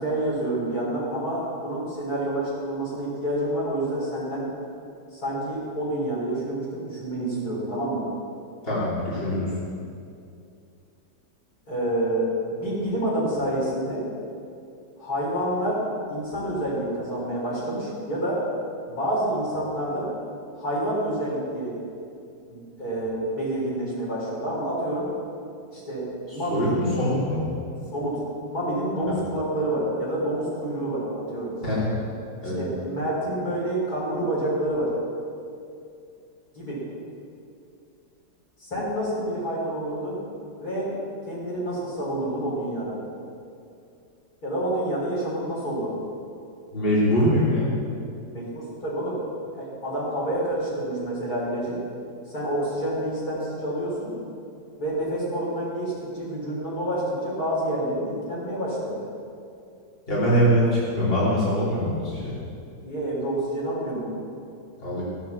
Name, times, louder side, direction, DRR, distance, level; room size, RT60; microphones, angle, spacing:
voice 1, 0.0-4.4 5.1-8.0 11.7-14.0 15.0-15.8 16.1-18.4 18.9-20.1 20.5-21.8 22.5-25.1 25.7-26.9 27.9-28.2 28.5-31.5 32.6-34.9 36.5-36.8 38.6-40.2 40.6-40.9 41.3-43.0 44.4-46.0 48.3-49.2 49.5-51.8 52.3-54.1 54.8-59.0 62.8-64.1, right 1 dB, 55° left, -7 dB, 4.8 m, -28 dB
voice 2, 8.6-9.5 26.3-27.4 31.6-31.9 32.4-32.6 46.7-47.7 60.1-62.3 64.8-65.0, equal, 30° left, -9 dB, 3.5 m, -23 dB
16.0 x 7.7 x 7.3 m, 2.5 s
omnidirectional pair, 1.9 m